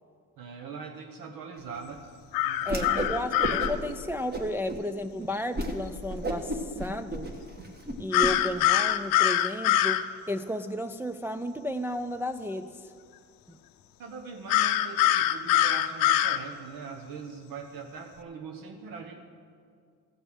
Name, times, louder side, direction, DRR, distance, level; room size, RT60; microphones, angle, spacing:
voice 1, 0.4-2.0 2.4-3.1 14.0-19.2, right 5 dB, 65° right, 3 dB, 1.1 m, -41 dB
sound 1, 2.3-3.7 8.1-10.0 14.5-16.4, left 12 dB, 75° left, 0.7 m, -23 dB
Whoosh swoosh swish, 2.6-3.1 3.4-3.9 4.3-4.8 5.2-5.3 5.5-5.7 6.1-8.3, right 1 dB, 25° right, 1.5 m, -32 dB
voice 2, 2.7-7.3 8.0-12.9 13.5-13.6, left 1 dB, 5° right, 6 dB, 0.3 m, -33 dB
14.5 x 5.4 x 7.9 m, 2.2 s
cardioid pair, 95°, 36 cm